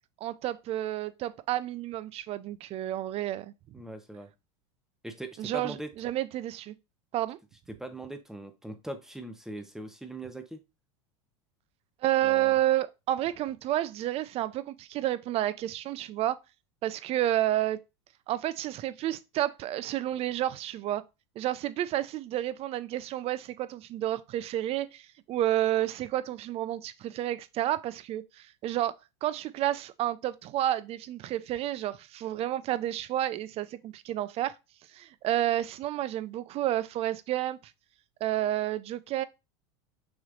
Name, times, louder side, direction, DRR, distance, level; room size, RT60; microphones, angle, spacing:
voice 1, 0.2-3.5 5.4-6.7 7.1-7.4 12.0-16.4 16.8-17.8 18.3-21.0 21.4-28.9 29.2-34.5 34.9-37.6 38.2-39.2, right 13 dB, 40° right, 0.5 m, -30 dB
voice 2, 3.7-4.3 5.0-5.9 7.7-10.6 12.2-12.6, right 2 dB, 5° right, 0.8 m, -41 dB
6.2 x 3.2 x 2.5 m
supercardioid pair, 110°, 16 cm